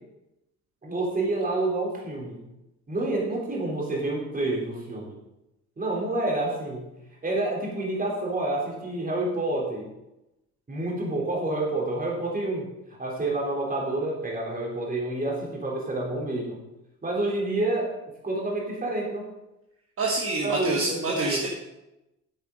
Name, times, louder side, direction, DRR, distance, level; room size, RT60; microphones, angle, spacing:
voice 1, 0.8-2.4 2.9-5.1 5.8-6.9 7.2-9.9 10.7-12.7 13.0-16.6 17.0-17.9 18.2-19.3 20.4-21.5, right 2 dB, 30° right, -2 dB, 3.6 m, -28 dB
voice 2, 20.0-21.5, right 2 dB, 45° right, -2 dB, 1.7 m, -27 dB
8.9 x 8.3 x 5.2 m, 0.93 s
cardioid pair, 90°, 30 cm